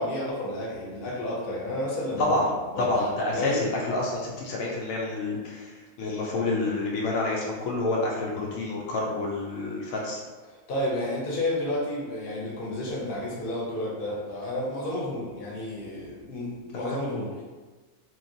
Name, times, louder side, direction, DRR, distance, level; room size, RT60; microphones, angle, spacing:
voice 1, 0.0-2.4 2.7-3.6 10.5-17.4, left 1 dB, 45° left, -5 dB, 0.9 m, -31 dB
voice 2, 2.2-2.5 2.8-5.7 6.0-10.2 16.7-17.0, left 2 dB, 80° left, -3 dB, 1.0 m, -28 dB
2.9 x 2.7 x 2.6 m, 1.3 s
omnidirectional pair, 1.4 m